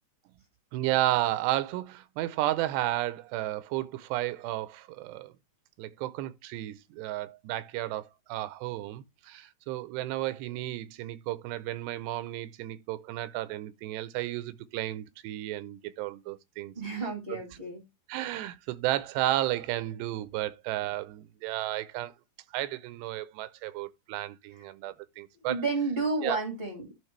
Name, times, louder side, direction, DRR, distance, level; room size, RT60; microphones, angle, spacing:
voice 1, 0.7-5.3 5.8-16.7 17.3-17.4 18.1-22.1 22.5-25.6 26.2-26.4, right 15 dB, 85° right, 2.8 m, -33 dB
voice 2, 16.7-17.8 25.5-26.9, right 3 dB, 30° right, 1.0 m, -31 dB
12.5 x 5.0 x 3.2 m
omnidirectional pair, 4.8 m